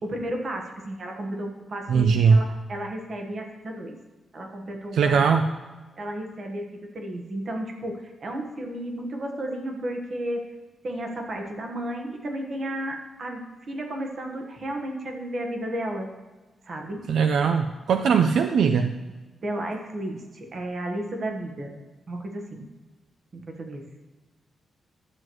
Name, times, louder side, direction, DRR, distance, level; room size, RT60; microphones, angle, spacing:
voice 1, 0.0-3.9 4.3-5.2 6.0-10.5 10.8-16.1 16.7-17.0 19.4-21.7 22.1-22.7 23.3-23.9, right 1 dB, 40° right, 3 dB, 1.2 m, -33 dB
voice 2, 1.9-2.4 4.9-5.5 17.1-19.0, right 6 dB, 75° right, 7 dB, 0.4 m, -20 dB
12.0 x 7.8 x 3.1 m, 1.2 s
wide cardioid pair, 160°, 0 cm